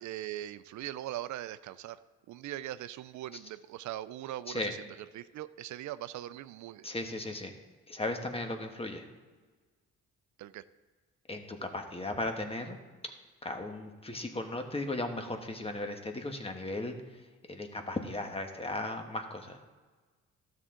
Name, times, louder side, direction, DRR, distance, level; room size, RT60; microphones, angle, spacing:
voice 1, 0.0-2.0 2.3-4.8 5.1-6.9 10.4-10.6, right 13 dB, 70° right, 14 dB, 0.4 m, -40 dB
voice 2, 6.8-7.5 7.9-9.1 11.3-12.8 13.4-16.9 17.5-19.6, left 2 dB, 20° left, 5 dB, 1.3 m, -36 dB
12.5 x 7.6 x 3.7 m, 1.4 s
cardioid pair, 90°, 30 cm